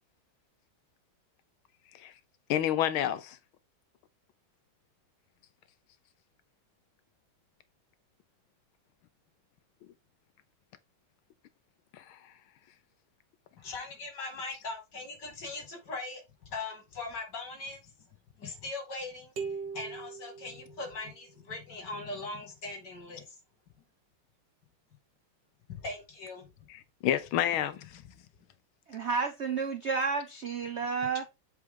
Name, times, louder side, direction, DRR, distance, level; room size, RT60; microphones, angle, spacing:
voice 1, 2.5-3.4 11.9-12.2 26.7-28.0, left 11 dB, 80° left, 1.5 m, -29 dB
voice 2, 13.6-17.8 18.4-23.3 25.7-26.5 27.9-28.1 31.0-31.3, left 3 dB, 55° left, 3.0 m, -40 dB
sound 1, 19.4-21.2, right 5 dB, 60° right, 2.2 m, -40 dB
voice 3, 28.9-31.2, right 5 dB, 80° right, 0.6 m, -31 dB
7.9 x 4.8 x 3.7 m
omnidirectional pair, 2.3 m